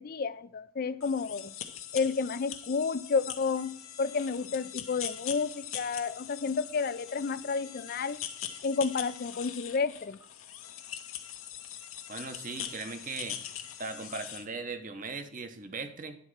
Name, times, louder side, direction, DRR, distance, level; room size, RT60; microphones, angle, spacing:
voice 1, 0.0-1.5 1.9-8.2 8.6-10.2, left 5 dB, 45° left, 0.4 m, -31 dB
sound 1, 1.0-14.5, left 10 dB, 85° left, 1.0 m, -42 dB
voice 2, 12.1-13.4 13.8-16.2, right 4 dB, 40° right, 0.9 m, -38 dB
10.5 x 4.2 x 6.4 m
head